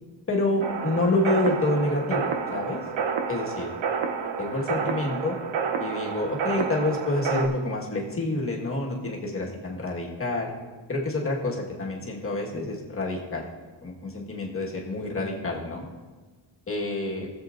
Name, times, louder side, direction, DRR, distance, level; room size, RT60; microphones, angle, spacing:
voice 1, 0.3-2.8 3.3-3.7 4.4-5.4 5.8-10.5 10.9-13.5 13.8-15.8 16.7-17.3, left 2 dB, 30° left, -2 dB, 1.5 m, -28 dB
sound 1, 0.6-7.5, right 6 dB, 80° right, 1.0 m, -29 dB
20.0 x 7.5 x 2.6 m, 1.4 s
wide cardioid pair, 175°, 45 cm